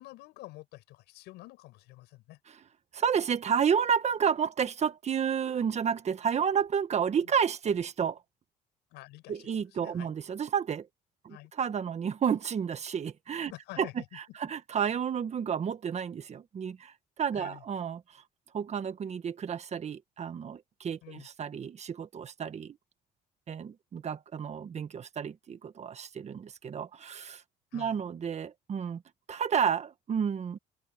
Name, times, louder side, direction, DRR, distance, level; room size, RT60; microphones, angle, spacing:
voice 1, 0.0-2.4 8.9-9.5 9.8-10.1 11.3-11.5 13.5-14.4 17.3-17.6 21.0-21.3 27.7-28.0, left 19 dB, 90° left, 7.6 m, -48 dB
voice 2, 2.9-8.2 9.3-10.9 11.2-13.5 13.8-13.9 14.1-18.2 18.5-22.8 23.5-27.4 27.7-29.0 29.3-30.6, right 7 dB, 40° right, 1.6 m, -31 dB
cardioid pair, 110°, 17 cm